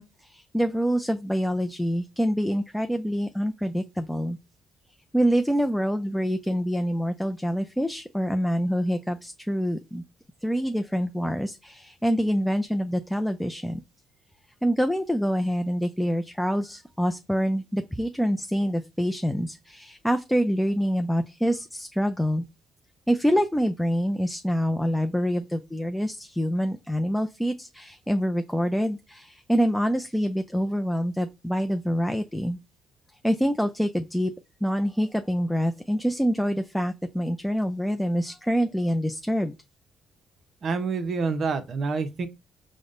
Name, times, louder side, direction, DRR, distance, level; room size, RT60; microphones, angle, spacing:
voice 1, 0.0-4.4 5.1-10.0 10.4-13.8 14.6-22.4 23.1-32.6 33.2-34.3 34.6-39.5, equal, 5° left, 0.4 m, -26 dB
voice 2, 40.6-42.3, right 4 dB, 55° right, 0.6 m, -27 dB
4.9 x 2.1 x 2.4 m
supercardioid pair, 75°, 0 cm